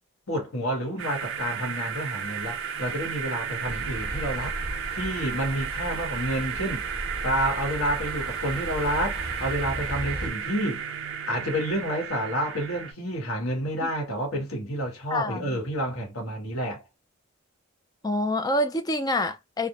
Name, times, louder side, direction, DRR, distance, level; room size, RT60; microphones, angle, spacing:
voice 1, 0.3-4.5 4.9-6.9 7.2-10.8 11.3-16.8, equal, 80° left, 1.2 m, -29 dB
sound 1, 1.0-12.9, right 7 dB, 60° right, 0.4 m, -33 dB
sound 2, 3.6-10.3, equal, 50° left, 1.0 m, -37 dB
voice 2, 15.1-15.6 18.0-19.7, left 1 dB, 20° left, 0.3 m, -27 dB
2.4 x 2.1 x 2.9 m
head